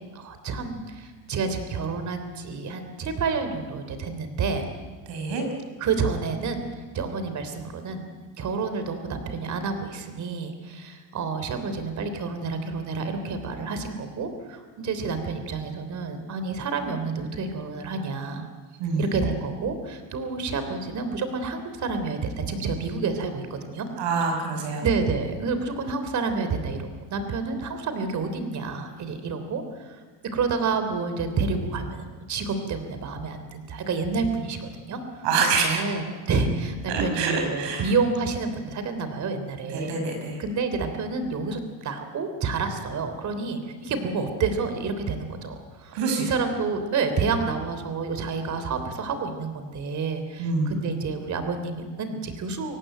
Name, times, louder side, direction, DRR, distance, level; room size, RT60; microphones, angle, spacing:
voice 1, 0.0-4.7 5.8-6.7 6.9-18.5 18.9-23.9 24.8-30.0 30.3-40.0 40.4-52.8, right 4 dB, 40° right, 8 dB, 3.4 m, -29 dB
voice 2, 5.1-5.4 18.8-19.1 24.0-24.8 35.2-35.8 36.9-37.9 39.7-40.4 45.9-46.3 50.4-50.8, right 4 dB, 80° right, 3 dB, 5.7 m, -26 dB
24.5 x 17.5 x 9.2 m, 1.4 s
cardioid pair, 145°, 43 cm